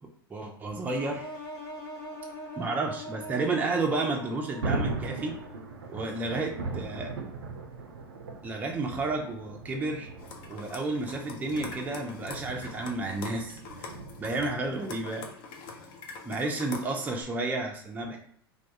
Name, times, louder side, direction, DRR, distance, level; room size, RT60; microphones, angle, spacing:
voice 1, 0.3-1.3 2.6-5.3 5.9-7.1 8.4-10.1 10.5-15.3 16.2-18.2, right 3 dB, 15° right, 1 dB, 0.4 m, -31 dB
sound 1, 0.9-5.8, equal, 65° left, 0.8 m, -42 dB
Thunder, 4.0-14.7, right 3 dB, 75° right, 0.4 m, -39 dB
sound 2, 10.2-17.2, left 4 dB, 45° left, 0.5 m, -44 dB
2.3 x 2.2 x 2.7 m, 0.65 s
figure-of-eight pair, 85°, 13 cm